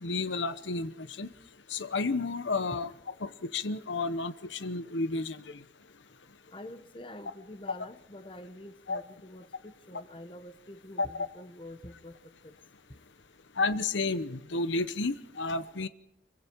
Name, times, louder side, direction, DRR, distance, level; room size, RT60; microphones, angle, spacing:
voice 1, 0.0-1.3 1.7-2.9 3.2-5.4 8.9-9.0 11.0-11.1 13.6-15.9, left 3 dB, 90° left, 12 dB, 1.0 m, -31 dB
voice 2, 6.5-12.6, left 1 dB, 30° left, 10 dB, 1.0 m, -47 dB
25.0 x 23.5 x 4.6 m, 0.76 s
head